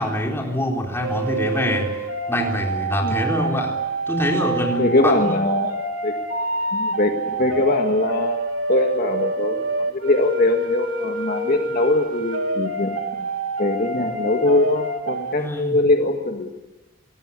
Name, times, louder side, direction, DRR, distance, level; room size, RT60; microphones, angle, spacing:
voice 1, 0.0-1.9 2.3-3.8 4.1-5.3 15.3-15.8, equal, 10° left, 0 dB, 4.0 m, -24 dB
sound 1, 1.0-15.3, right 2 dB, 90° right, 3.3 m, -27 dB
voice 2, 4.8-6.2 6.7-8.4 8.7-12.9 13.2-13.3 13.6-16.5, left 2 dB, 45° left, 3 dB, 1.8 m, -22 dB
25.5 x 18.5 x 8.4 m, 1.1 s
head